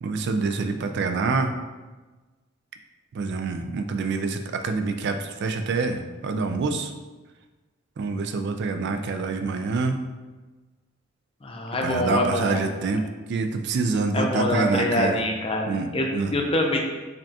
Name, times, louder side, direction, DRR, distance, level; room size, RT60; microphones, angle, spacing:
voice 1, 0.0-1.5 3.1-6.9 8.0-10.0 11.8-13.0 13.3-15.2 15.7-16.3, right 4 dB, 55° right, 7 dB, 0.3 m, -26 dB
voice 2, 11.4-12.6 14.1-16.8, left 1 dB, 30° left, 1 dB, 0.5 m, -25 dB
5.0 x 2.3 x 2.7 m, 1.2 s
head